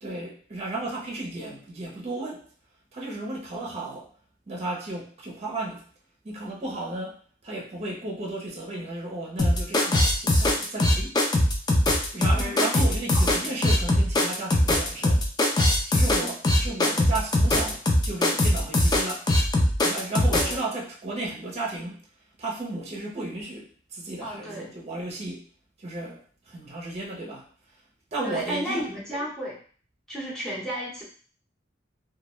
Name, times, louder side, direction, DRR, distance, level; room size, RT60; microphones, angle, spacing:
voice 1, 0.0-2.5 2.9-4.1 4.5-5.8 6.2-11.2 12.1-15.3 15.9-19.3 19.8-22.0 22.4-25.5 25.8-27.5 28.1-28.8, right 2 dB, 35° right, -3 dB, 0.6 m, -34 dB
sound 1, 9.4-20.5, left 1 dB, 20° left, 0.3 m, -21 dB
voice 2, 12.3-12.8 13.1-13.3 20.3-20.6 24.2-24.7 28.2-29.6 30.1-31.0, equal, 5° left, -7 dB, 0.8 m, -33 dB
2.2 x 2.1 x 2.9 m, 0.44 s
head